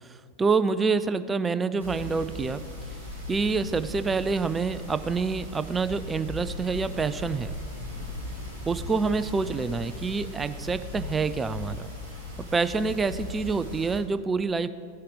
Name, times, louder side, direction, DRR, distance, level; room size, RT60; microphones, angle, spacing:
voice 1, 0.4-2.6 3.3-7.5 8.7-11.9 12.5-14.7, right 4 dB, 15° right, 13 dB, 0.4 m, -27 dB
sound 1, 1.8-14.0, left 1 dB, 90° left, 2.9 m, -38 dB
16.0 x 5.7 x 5.0 m, 2.2 s
figure-of-eight pair, 90°, 0 cm